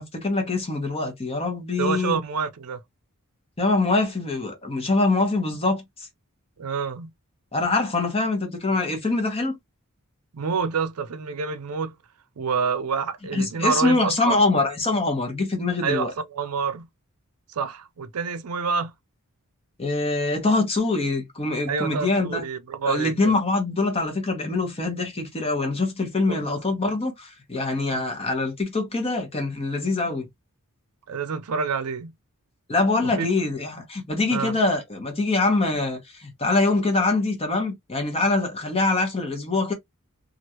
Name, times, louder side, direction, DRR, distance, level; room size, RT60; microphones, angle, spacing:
voice 1, 0.0-2.2 3.6-5.8 7.5-9.6 13.3-16.1 19.8-22.4 22.8-30.3 32.7-39.7, left 3 dB, 25° left, 1.1 m, -24 dB
voice 2, 1.8-2.8 6.6-7.1 10.3-11.9 12.4-14.4 15.8-16.9 17.5-18.9 21.7-23.3 26.3-26.6 27.9-28.0 31.1-32.1 33.0-33.3 34.3-34.6, right 5 dB, 85° right, 0.5 m, -28 dB
3.0 x 2.5 x 2.8 m
head